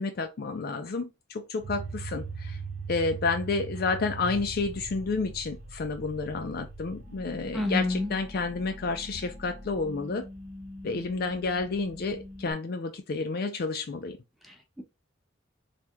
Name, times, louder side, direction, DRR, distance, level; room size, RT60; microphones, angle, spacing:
voice 1, 0.0-2.6 2.9-10.3 10.8-14.2, left 4 dB, 50° left, 0.4 m, -30 dB
sound 1, 1.6-12.5, right 3 dB, 40° right, 0.8 m, -41 dB
voice 2, 7.5-8.1 14.5-14.8, left 2 dB, ahead, 0.8 m, -29 dB
3.4 x 2.7 x 3.0 m
head